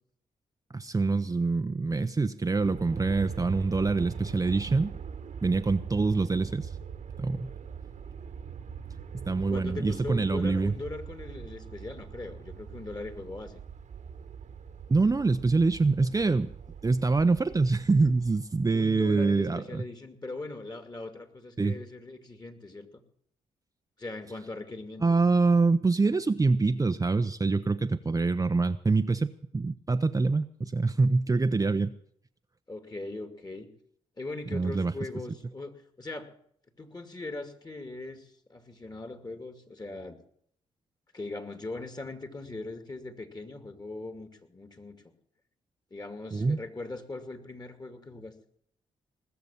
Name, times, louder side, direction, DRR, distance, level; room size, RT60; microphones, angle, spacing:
voice 1, 0.7-4.9 5.4-6.7 7.2-7.5 9.1-10.7 14.9-16.5 16.8-19.8 21.6-21.7 25.0-31.9 34.5-34.9 46.3-46.6, right 3 dB, 25° right, 9 dB, 0.7 m, -25 dB
Aircraft, 2.6-18.8, right 7 dB, 60° right, 1.3 m, -42 dB
voice 2, 9.5-13.6 18.7-22.9 24.0-25.0 32.7-33.7 34.2-35.7 36.0-36.3 36.8-40.2 41.1-45.2 45.9-48.3, left 2 dB, 30° left, 8 dB, 2.6 m, -40 dB
19.5 x 7.0 x 8.6 m, 0.66 s
supercardioid pair, 50°, 14 cm